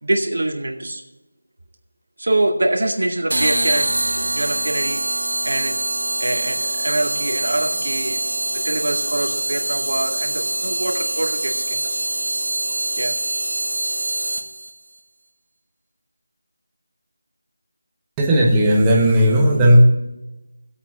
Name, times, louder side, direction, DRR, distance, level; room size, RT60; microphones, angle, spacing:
voice 1, 0.0-1.0 2.2-5.0 5.4-5.7 6.2-11.9 13.0-13.1, right 2 dB, 65° right, 1 dB, 2.1 m, -24 dB
sound 1, 3.3-14.7, right 1 dB, 80° right, 1.6 m, -24 dB
voice 2, 18.2-19.8, equal, 10° right, -2 dB, 1.2 m, -14 dB
16.5 x 8.2 x 3.7 m, 1.0 s
figure-of-eight pair, 170°, 0 cm